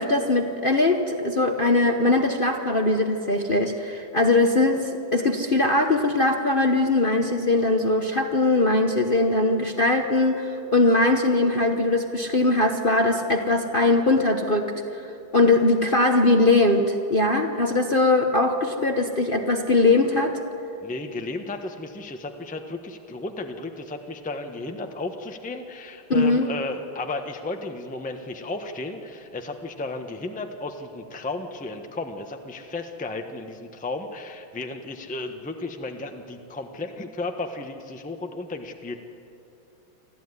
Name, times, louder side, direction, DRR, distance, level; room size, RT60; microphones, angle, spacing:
voice 1, 0.0-14.8 15.3-20.4 26.1-26.5, left 2 dB, 35° left, 3 dB, 1.0 m, -21 dB
voice 2, 20.8-39.0, left 2 dB, 5° left, 5 dB, 0.8 m, -34 dB
25.0 x 14.5 x 9.7 m, 2.8 s
omnidirectional pair, 2.1 m